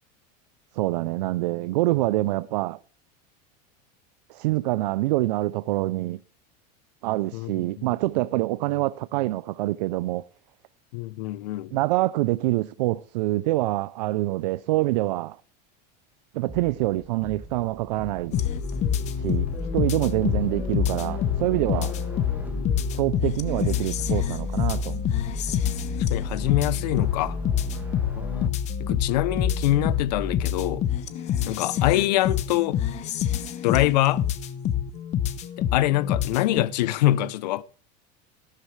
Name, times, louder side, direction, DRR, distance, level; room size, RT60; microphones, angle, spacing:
voice 1, 0.7-2.8 4.3-6.2 7.0-10.2 11.7-15.4 16.3-18.4 19.2-19.5 19.7-21.9 22.9-25.0, right 18 dB, 80° right, 0.5 m, -25 dB
voice 2, 10.9-11.7 22.3-22.9 26.0-27.4 28.0-30.8 31.5-32.8 33.6-34.2 35.6-37.6, left 15 dB, 75° left, 0.7 m, -25 dB
sound 1, 16.5-28.5, right 3 dB, 10° right, 1.3 m, -42 dB
sound 2, 18.3-36.6, left 8 dB, 30° left, 0.9 m, -27 dB
14.5 x 12.5 x 3.3 m
supercardioid pair, 155°, 21 cm